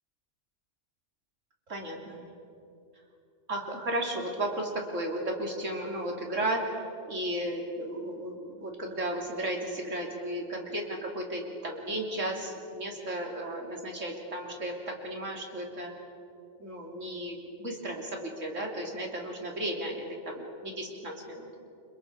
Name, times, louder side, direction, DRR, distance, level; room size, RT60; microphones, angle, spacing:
voice 1, 1.7-2.2 3.5-6.6 7.1-15.9 16.6-21.5, right 1 dB, 85° right, 0 dB, 3.5 m, -34 dB
30.0 x 26.0 x 4.7 m, 2.6 s
omnidirectional pair, 1.3 m